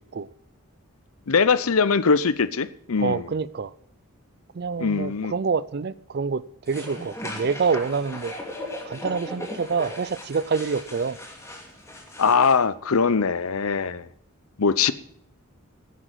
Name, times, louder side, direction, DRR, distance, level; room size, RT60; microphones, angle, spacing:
voice 1, 1.3-3.2 4.8-5.3 12.2-14.1 14.6-14.9, left 5 dB, 75° left, 0.7 m, -21 dB
voice 2, 3.0-3.7 4.5-8.3 8.9-11.2, right 5 dB, 45° right, 0.4 m, -27 dB
sound 1, 6.7-12.6, left 1 dB, 15° left, 2.4 m, -37 dB
10.0 x 9.4 x 9.1 m
head